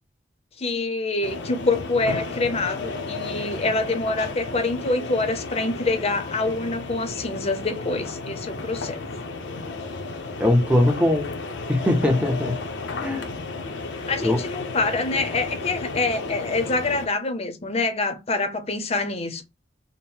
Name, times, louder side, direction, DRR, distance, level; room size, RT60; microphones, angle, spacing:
voice 1, 0.6-9.0 14.1-19.4, left 3 dB, 35° left, 0.7 m, -26 dB
sound 1, 1.2-17.1, left 3 dB, 75° left, 0.7 m, -33 dB
voice 2, 10.4-11.3 11.7-12.6 13.0-13.3 14.2-14.4, left 1 dB, 5° right, 0.6 m, -20 dB
3.7 x 2.1 x 4.2 m
head